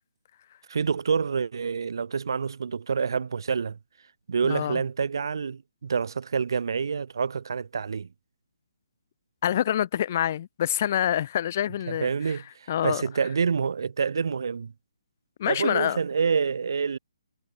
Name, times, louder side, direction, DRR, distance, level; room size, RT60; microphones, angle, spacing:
voice 1, 0.7-3.8 4.3-8.1 11.9-14.7 15.4-17.0, right 6 dB, 60° right, 0.6 m, -27 dB
voice 2, 4.5-4.8 9.4-12.1 12.7-13.0 15.4-16.0, left 10 dB, 30° left, 0.3 m, -26 dB
hypercardioid pair, 170°, 2 cm